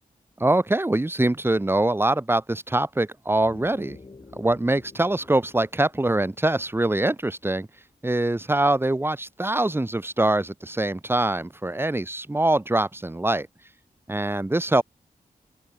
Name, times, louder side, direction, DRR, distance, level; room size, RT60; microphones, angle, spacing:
voice 1, 0.4-4.0 4.4-7.7 8.0-13.5 14.1-14.8, right 2 dB, 15° right, 1.5 m, -23 dB
sound 1, 3.3-8.1, left 3 dB, 35° left, 5.2 m, -49 dB
open air
wide cardioid pair, 155°, 16 cm